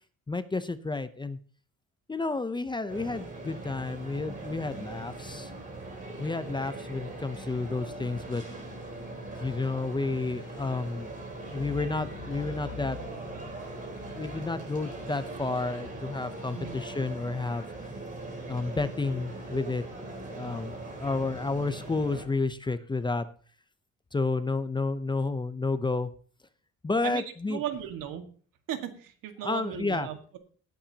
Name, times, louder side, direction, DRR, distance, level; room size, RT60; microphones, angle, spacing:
voice 1, 0.3-1.4 2.1-5.5 6.2-8.4 9.4-11.1 11.5-13.0 14.1-17.6 18.5-19.8 20.2-23.3 24.1-26.1 26.8-27.6 29.4-30.1, left 3 dB, 15° left, 12 dB, 0.6 m, -31 dB
sound 1, 2.9-22.3, right 2 dB, 25° right, 4.0 m, -40 dB
sound 2, 6.9-16.4 17.2-17.3, left 5 dB, 70° left, 2.7 m, -48 dB
voice 2, 27.0-28.3 28.7-30.4, right 10 dB, 85° right, 6 dB, 1.8 m, -36 dB
17.0 x 8.9 x 2.8 m, 0.43 s
cardioid pair, 130°, 32 cm